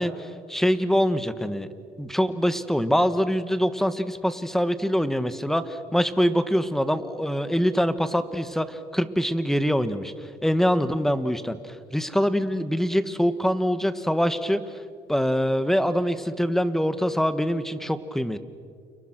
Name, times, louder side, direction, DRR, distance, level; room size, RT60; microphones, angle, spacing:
voice 1, 0.0-1.7 2.0-10.1 10.4-14.6 15.1-18.4, equal, ahead, 11 dB, 1.5 m, -24 dB
30.0 x 29.5 x 6.2 m, 2.2 s
cardioid pair, 110°, 17 cm